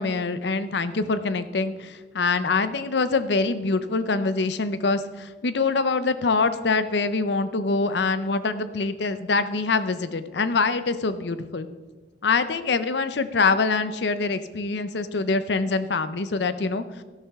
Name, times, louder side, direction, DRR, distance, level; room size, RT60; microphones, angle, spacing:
voice 1, 0.0-11.7 12.2-16.9, left 4 dB, 75° left, 12 dB, 0.7 m, -24 dB
12.5 x 11.5 x 3.6 m, 1.3 s
head